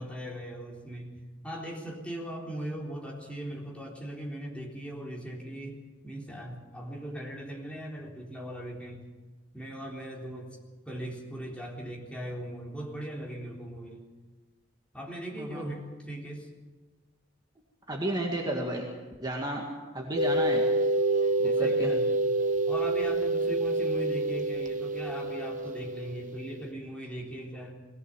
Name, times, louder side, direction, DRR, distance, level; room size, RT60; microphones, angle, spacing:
voice 1, 0.0-9.1 9.5-10.6 10.8-14.1 14.9-16.5 21.4-22.1 22.7-27.7, right 1 dB, 5° left, -2 dB, 3.8 m, -39 dB
voice 2, 15.3-15.7 17.9-18.9 19.2-20.6 21.4-21.9, right 1 dB, 20° right, 0 dB, 2.1 m, -32 dB
sound 1, 20.2-26.7, right 2 dB, 40° right, 1.1 m, -27 dB
21.0 x 17.5 x 7.6 m, 1.3 s
head